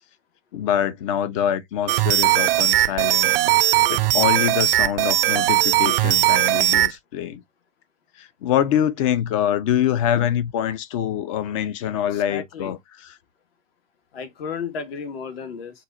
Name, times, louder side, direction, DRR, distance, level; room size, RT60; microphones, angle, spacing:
voice 1, 0.5-3.3 3.9-7.4 8.2-13.2, left 10 dB, 25° left, 0.4 m, -24 dB
sound 1, 1.9-6.9, right 14 dB, 50° right, 0.5 m, -19 dB
voice 2, 12.1-12.7 14.1-15.8, left 5 dB, 50° left, 1.3 m, -33 dB
3.8 x 2.4 x 3.7 m
figure-of-eight pair, 110°, 37 cm